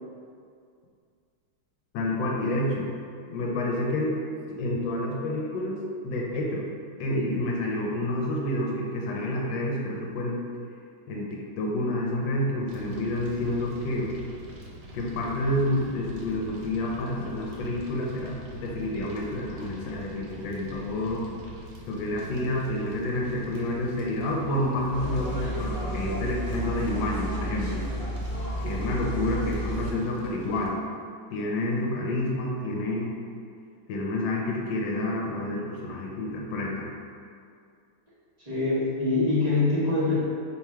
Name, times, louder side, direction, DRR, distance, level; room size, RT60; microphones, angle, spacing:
voice 1, 1.9-2.9 3.3-4.2 4.5-6.7 7.0-10.4 11.1-14.1 14.9-21.3 21.9-27.8 28.6-30.8 31.3-33.1 33.9-36.9, left 1 dB, 80° left, -2 dB, 1.3 m, -29 dB
Fire, 12.7-30.7, equal, 85° right, 1.4 m, -44 dB
sound 1, 24.9-29.9, right 1 dB, 60° left, 0.9 m, -32 dB
voice 2, 38.4-40.1, left 3 dB, 35° right, -11 dB, 0.6 m, -24 dB
3.3 x 2.3 x 4.3 m, 2.3 s
omnidirectional pair, 2.1 m